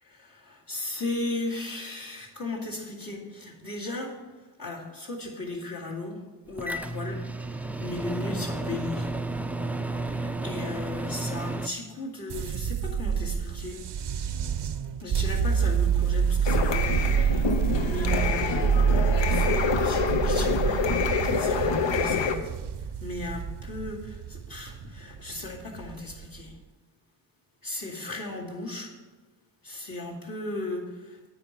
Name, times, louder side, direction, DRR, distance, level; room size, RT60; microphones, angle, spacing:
voice 1, 0.0-4.2 4.6-6.2 6.5-7.2 7.5-9.1 10.0-13.8 15.0-16.9 17.8-18.7 19.2-22.5 23.0-26.5 27.6-28.9 29.6-31.2, left 2 dB, 50° left, -3 dB, 2.3 m, -36 dB
Microwave oven, 6.6-11.7, right 2 dB, 5° right, 0.3 m, -32 dB
sound 1, 12.3-26.5, right 7 dB, 65° right, 0.6 m, -27 dB
sound 2, 16.5-22.4, left 6 dB, 75° left, 0.8 m, -27 dB
9.1 x 4.8 x 7.4 m, 1.2 s
wide cardioid pair, 65°, 44 cm